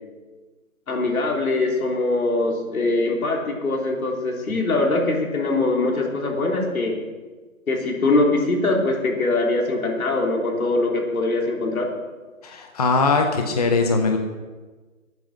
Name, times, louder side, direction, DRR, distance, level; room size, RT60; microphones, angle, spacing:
voice 1, 0.9-7.0 7.7-11.9, left 2 dB, 80° left, 0 dB, 3.4 m, -22 dB
voice 2, 12.4-14.2, left 4 dB, 30° left, 4 dB, 0.8 m, -20 dB
15.5 x 9.2 x 6.4 m, 1.3 s
hypercardioid pair, 170°, 42 cm